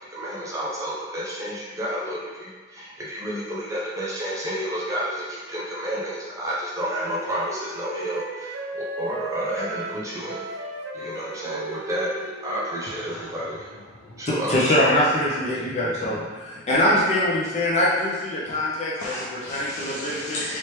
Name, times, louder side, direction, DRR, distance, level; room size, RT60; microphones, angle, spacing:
voice 1, 0.1-10.5 10.9-13.7 14.2-14.7, equal, 15° right, -6 dB, 0.5 m, -30 dB
Wind instrument woodwind instrument, 6.8-13.1, right 2 dB, 85° right, 0.5 m, -36 dB
voice 2, 12.9-14.2 18.5-18.6 19.0-20.6, left 1 dB, 80° left, -6 dB, 0.5 m, -36 dB
voice 3, 14.3-19.1 19.5-20.4, left 1 dB, 35° left, -6 dB, 0.6 m, -23 dB
3.2 x 3.0 x 3.1 m, 1.4 s
head